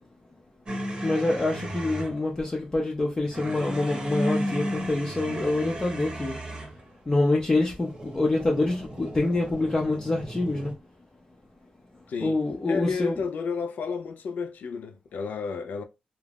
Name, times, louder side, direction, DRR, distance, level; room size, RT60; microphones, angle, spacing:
sound 1, 0.7-2.2 3.3-6.8 7.7-10.7, right 1 dB, 35° right, 0.8 m, -34 dB
voice 1, 1.0-6.3 7.1-10.7 12.2-13.2, left 2 dB, 25° left, 0.5 m, -26 dB
voice 2, 12.1-12.4 12.7-15.8, left 5 dB, 85° left, 0.4 m, -31 dB
2.4 x 2.1 x 3.3 m
wide cardioid pair, 115°, 3 cm